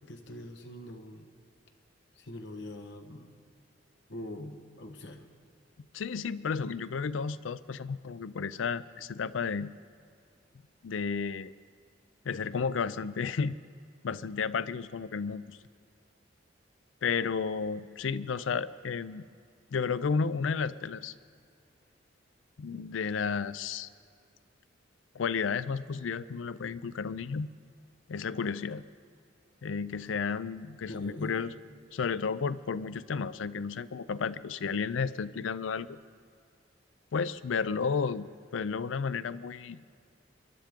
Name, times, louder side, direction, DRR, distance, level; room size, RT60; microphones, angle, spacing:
voice 1, 0.0-1.3 2.2-3.3 4.1-5.2 30.9-31.4, left 1 dB, 65° left, 5 dB, 1.3 m, -43 dB
voice 2, 5.9-9.7 10.8-11.5 12.3-13.6 14.0-15.6 17.0-19.2 19.7-21.1 22.6-23.9 25.1-27.5 28.1-28.8 29.6-31.5 31.9-36.0 37.1-39.8, left 5 dB, 90° left, 16 dB, 0.4 m, -32 dB
23.0 x 11.5 x 3.7 m, 2.3 s
head